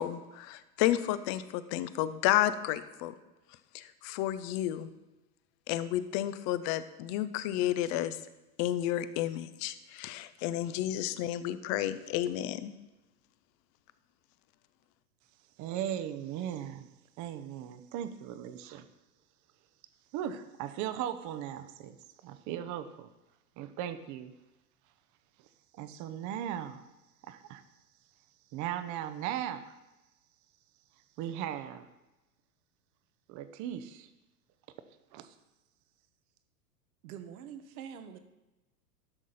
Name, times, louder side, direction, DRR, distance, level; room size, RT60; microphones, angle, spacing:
voice 1, 0.0-3.1 3.7-4.9 5.7-8.2 8.6-12.7, left 13 dB, 35° left, 14 dB, 0.6 m, -31 dB
voice 2, 15.6-16.9 17.2-18.9 20.1-22.0 22.2-23.1 23.6-24.3 25.7-26.8 27.2-27.6 28.5-29.7 31.2-31.9 33.3-34.1 35.1-35.3, right 10 dB, 35° right, 11 dB, 0.8 m, -37 dB
voice 3, 37.0-38.2, right 8 dB, 60° right, 9 dB, 1.2 m, -45 dB
12.5 x 6.1 x 4.1 m, 1.0 s
hypercardioid pair, 105°, 48 cm